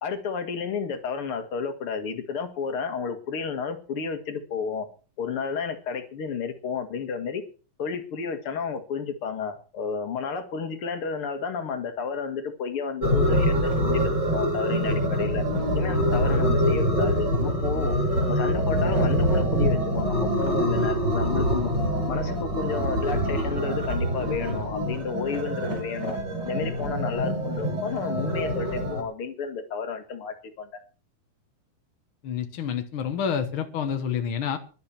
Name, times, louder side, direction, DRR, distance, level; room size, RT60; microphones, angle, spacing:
voice 1, 0.0-4.9 5.2-7.4 7.8-15.4 15.7-18.0 18.3-21.7 22.1-26.2 26.4-30.7, left 5 dB, 45° left, 8 dB, 2.0 m, -31 dB
sound 1, 13.0-29.0, equal, 30° right, 4.0 m, -25 dB
voice 2, 32.2-34.6, left 7 dB, 70° left, 7 dB, 1.2 m, -28 dB
17.5 x 11.5 x 4.4 m, 0.37 s
omnidirectional pair, 4.3 m